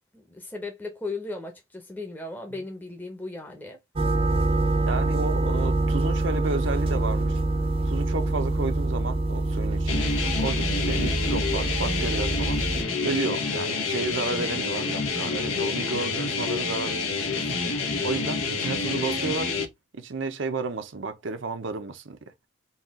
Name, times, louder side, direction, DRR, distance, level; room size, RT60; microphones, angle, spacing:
voice 1, 0.1-3.8 14.1-14.5, left 3 dB, 10° left, 0.7 m, -37 dB
sound 1, 4.0-12.8, right 2 dB, 25° right, 0.5 m, -25 dB
voice 2, 4.9-7.4 7.8-10.1 10.4-12.6 13.0-17.7 18.0-22.2, right 3 dB, 65° right, 0.7 m, -32 dB
sound 2, 9.9-19.7, left 4 dB, 90° left, 1.0 m, -28 dB
4.1 x 2.4 x 3.5 m
head